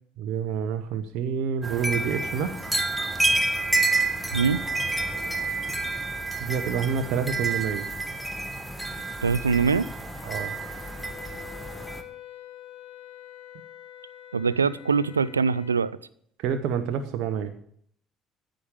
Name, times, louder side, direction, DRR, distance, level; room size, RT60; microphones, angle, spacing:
voice 1, 0.2-2.6 6.4-7.9 10.2-10.6 16.4-17.5, right 7 dB, 60° right, 7 dB, 0.8 m, -28 dB
sound 1, 1.6-12.0, right 2 dB, ahead, 1.5 m, -29 dB
voice 2, 9.2-9.8 14.3-16.0, right 5 dB, 90° right, 19 dB, 0.3 m, -23 dB
Wind instrument woodwind instrument, 10.0-15.8, left 12 dB, 65° left, 3.0 m, -46 dB
14.0 x 5.2 x 7.3 m, 0.65 s
figure-of-eight pair, 55°, 0 cm